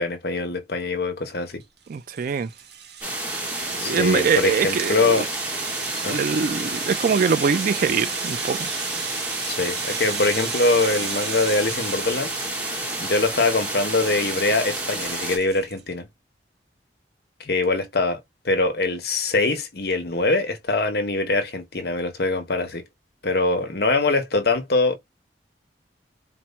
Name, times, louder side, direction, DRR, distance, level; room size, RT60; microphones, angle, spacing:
voice 1, 0.0-1.6 3.8-5.2 6.0-6.2 9.4-12.3 13.0-16.1 17.4-18.2 18.4-22.8 23.2-25.0, left 3 dB, 60° left, 1.0 m, -23 dB
Rattle (instrument), 1.6-15.8, right 7 dB, 65° right, 1.0 m, -36 dB
voice 2, 1.9-2.5 3.8-5.2 6.1-8.7, right 6 dB, 50° right, 0.4 m, -23 dB
sound 1, 3.0-15.4, right 1 dB, 10° right, 1.1 m, -30 dB
4.4 x 2.2 x 4.1 m
head